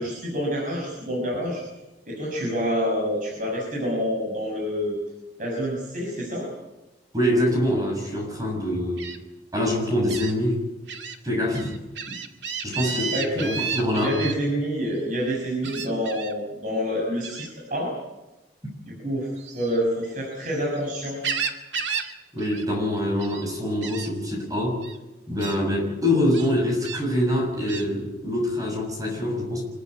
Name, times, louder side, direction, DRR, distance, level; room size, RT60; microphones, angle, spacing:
voice 1, 0.0-1.6 2.0-5.0 5.4-6.5 12.1-12.2 13.1-13.6 14.0-17.9 18.8-19.3 19.5-21.2, equal, 45° right, -2 dB, 6.3 m, -27 dB
voice 2, 7.1-9.0 9.5-10.6 11.2-11.8 12.6-14.2 22.3-24.8 25.3-29.6, left 1 dB, 20° right, 2 dB, 6.7 m, -25 dB
Gull seagull, 9.0-9.2 10.1-10.3 10.9-11.2 11.5-14.3 15.6-16.3 17.2-17.5 19.4-20.6 21.0-22.1 22.4-22.7 23.0-23.4 23.8-24.1 24.8-25.0 25.4-25.6 26.3-27.0 27.7-27.9, right 6 dB, 90° right, 2.4 m, -32 dB
26.5 x 15.0 x 9.7 m, 1.0 s
head